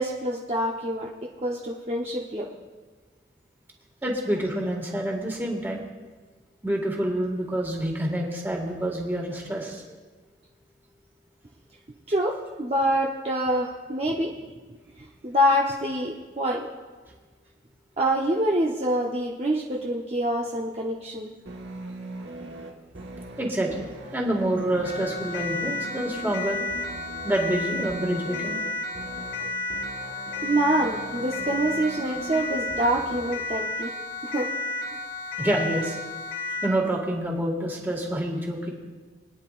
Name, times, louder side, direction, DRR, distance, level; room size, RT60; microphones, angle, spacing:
voice 1, 0.0-2.4 12.1-14.4 15.0-16.7 18.0-21.3 30.4-33.9 34.2-34.5 34.9-35.0, right 1 dB, 35° right, -3 dB, 0.8 m, -26 dB
voice 2, 4.0-5.8 6.6-9.8 23.4-26.6 27.2-28.6 35.4-36.0 36.6-38.7, right 1 dB, 10° right, 0 dB, 1.8 m, -27 dB
sound 1, 21.5-33.5, right 2 dB, 80° right, 1.3 m, -40 dB
Siren, 24.8-36.8, left 3 dB, 45° left, 1.6 m, -32 dB
24.0 x 9.8 x 2.5 m, 1.4 s
head